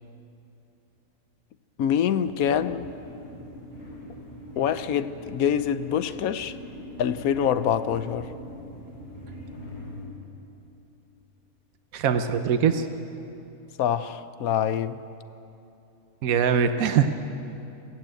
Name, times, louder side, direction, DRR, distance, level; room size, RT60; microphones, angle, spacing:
voice 1, 1.8-2.9 4.6-6.6 7.0-8.3 13.8-15.0, left 9 dB, 85° left, 13 dB, 1.2 m, -25 dB
sound 1, 2.2-10.0, equal, 70° left, 7.2 m, -42 dB
voice 2, 11.9-12.9 16.2-17.1, right 7 dB, 80° right, 8 dB, 1.3 m, -22 dB
21.5 x 16.0 x 9.1 m, 2.9 s
omnidirectional pair, 1.4 m